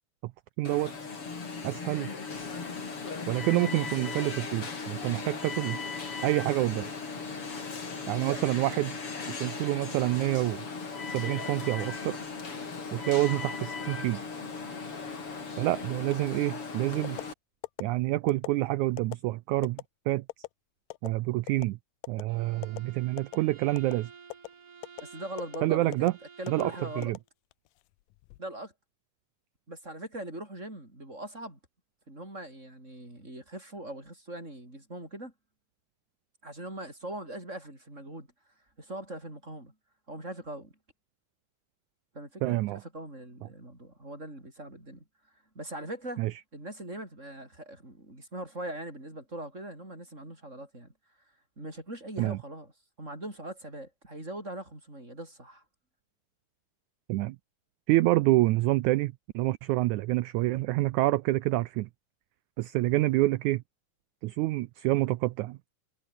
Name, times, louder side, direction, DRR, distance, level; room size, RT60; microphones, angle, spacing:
Alarm, 0.6-17.3, left 4 dB, 40° left, 4.7 m, -37 dB
voice 1, 0.6-0.9 1.6-2.1 3.3-5.8 6.2-6.9 8.1-9.0 9.4-10.6 11.1-12.2 12.9-14.2 15.6-17.2 17.8-20.2 21.0-21.8 22.1-24.1 25.6-26.1 26.5-27.2 42.4-42.8 46.2-46.3 52.2-52.4 57.1-57.4 57.9-61.9 62.6-63.6 64.2-65.6, right 18 dB, 80° right, 1.8 m, -27 dB
sound 1, 17.0-17.3 17.6-17.8 18.3-18.5 19.0-19.2 19.6-19.8 20.3-20.5 20.9-21.1 21.5-21.7 22.0-22.2 22.6-22.8 23.2-23.4 23.8-24.0 24.3-24.5 24.8-25.0 25.4-25.6 25.9-26.1 26.5-26.6 27.0-27.7 28.1-28.4, left 19 dB, 85° left, 2.2 m, -38 dB
Bowed string instrument, 22.3-27.2, right 5 dB, 60° right, 5.6 m, -52 dB
voice 2, 25.0-26.1 26.4-27.1 28.4-28.7 29.7-31.6 32.1-35.3 36.4-38.3 38.8-39.7 40.1-40.7 42.1-45.0 45.5-46.2 46.5-50.9 51.6-52.7 53.0-55.6, right 1 dB, 20° right, 8.4 m, -41 dB
omnidirectional pair, 4.0 m